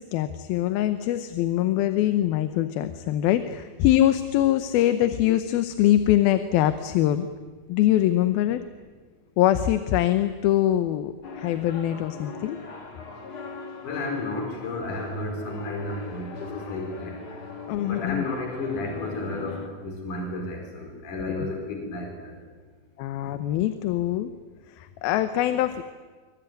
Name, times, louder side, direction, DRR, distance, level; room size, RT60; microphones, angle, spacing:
voice 1, 0.0-7.3 7.7-8.6 9.4-12.6 17.7-18.2 21.4-21.5 23.0-24.3 24.7-25.8, left 13 dB, 85° left, 10 dB, 2.8 m, -23 dB
sound 1, 11.2-19.7, left 4 dB, 40° left, 2.7 m, -40 dB
voice 2, 13.8-17.2 17.8-22.4, left 2 dB, 60° left, 2 dB, 5.9 m, -32 dB
25.0 x 24.0 x 9.3 m, 1.4 s
omnidirectional pair, 4.2 m